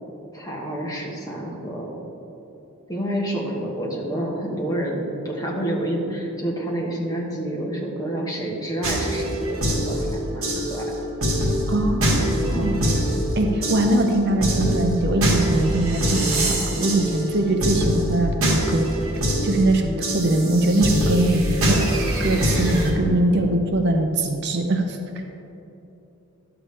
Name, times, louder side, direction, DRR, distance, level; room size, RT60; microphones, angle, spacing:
voice 1, 0.3-1.9 2.9-10.9 12.5-12.8, right 1 dB, 15° left, -3 dB, 1.2 m, -28 dB
sound 1, 8.8-22.9, equal, 75° right, 1.7 m, -24 dB
voice 2, 11.7-12.9 13.4-18.8 19.4-21.8 22.2-25.0, right 1 dB, 50° right, 4 dB, 0.6 m, -22 dB
11.0 x 6.9 x 3.3 m, 2.9 s
head